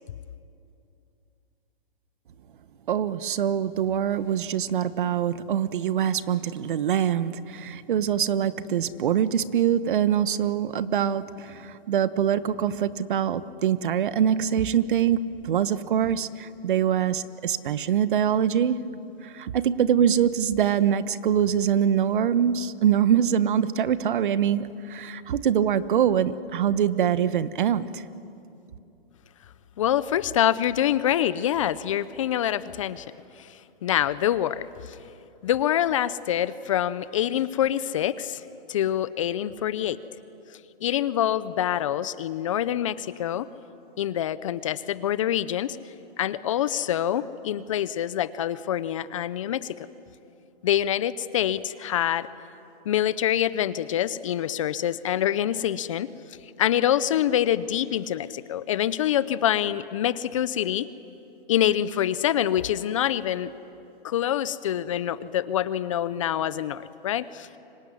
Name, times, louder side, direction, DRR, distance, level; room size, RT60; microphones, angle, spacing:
voice 1, 2.9-18.8 19.2-28.0, right 9 dB, 55° right, 15 dB, 1.1 m, -24 dB
voice 2, 29.8-33.1 33.4-35.0 35.4-38.4 38.7-40.0 40.8-43.5 44.0-45.8 46.2-49.8 50.6-52.3 52.9-56.1 56.6-60.9 61.5-63.5 64.0-67.5, left 11 dB, 35° left, 16 dB, 0.6 m, -25 dB
25.0 x 22.5 x 9.9 m, 2.7 s
hypercardioid pair, 160°, 30 cm